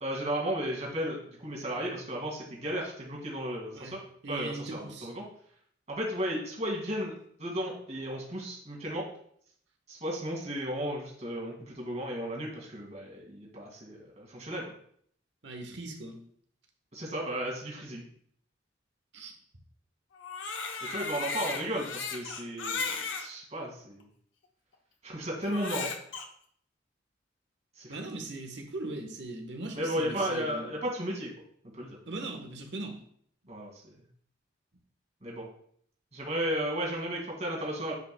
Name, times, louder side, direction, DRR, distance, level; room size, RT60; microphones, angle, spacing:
voice 1, 0.0-4.0 4.3-5.3 5.9-9.1 9.9-14.6 16.9-18.1 20.8-24.0 25.0-25.9 27.8-28.0 29.7-31.3 31.7-32.0 33.5-34.0 35.2-35.5 36.1-37.9, equal, 35° right, -2 dB, 2.1 m, -34 dB
voice 2, 3.7-5.1 15.4-16.2 19.1-19.3 27.9-30.8 32.1-33.0, right 2 dB, 65° right, 3 dB, 1.2 m, -39 dB
Crying sobbing, 20.1-23.3 24.0-24.1 25.4-26.3, left 5 dB, 90° left, 0.9 m, -35 dB
9.4 x 5.1 x 2.2 m, 0.63 s
head